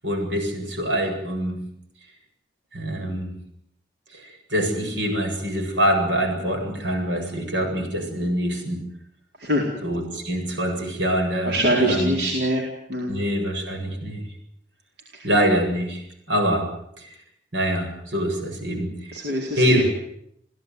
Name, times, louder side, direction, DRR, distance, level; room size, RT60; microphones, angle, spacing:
voice 1, 0.0-1.6 2.7-3.3 4.1-8.8 9.8-12.2 13.1-14.2 15.2-16.7 17.0-17.2 17.5-19.1 19.6-19.8, equal, 90° right, 4 dB, 7.8 m, -25 dB
voice 2, 9.4-9.7 11.4-12.6 12.9-13.2 15.1-15.3 19.1-19.8, equal, 70° right, 0 dB, 4.4 m, -23 dB
29.5 x 16.5 x 9.5 m, 0.76 s
head